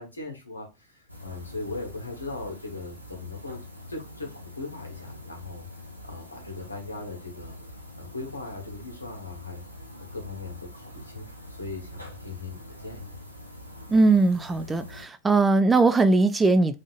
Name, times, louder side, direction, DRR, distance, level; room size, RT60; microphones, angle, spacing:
voice 1, 0.0-3.6 3.9-5.7 6.0-7.6 8.0-9.6 10.1-13.1, left 3 dB, 75° left, 1.1 m, -39 dB
sound 1, 1.1-15.0, left 1 dB, 90° right, 0.8 m, -44 dB
voice 2, 13.9-16.7, right 3 dB, 15° right, 0.3 m, -20 dB
3.6 x 2.5 x 3.8 m
figure-of-eight pair, 90°, 0 cm